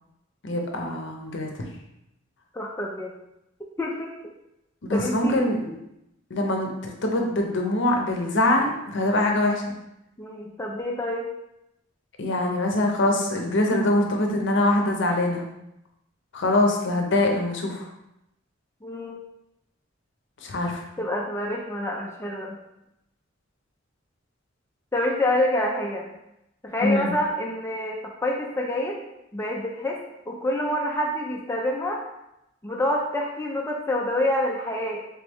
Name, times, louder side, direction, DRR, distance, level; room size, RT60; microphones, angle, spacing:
voice 1, 0.4-1.6 4.8-5.8 6.3-9.6 12.2-15.5 16.3-17.9 20.4-20.8 26.8-27.1, left 1 dB, 65° left, 2 dB, 0.7 m, -23 dB
voice 2, 2.5-3.1 3.8-4.1 4.9-5.4 10.2-11.3 18.8-19.2 21.0-22.6 24.9-26.1 26.6-29.0 29.3-30.0 30.3-32.0 32.6-35.1, left 1 dB, 15° left, -1 dB, 0.4 m, -27 dB
3.4 x 3.1 x 3.4 m, 0.86 s
head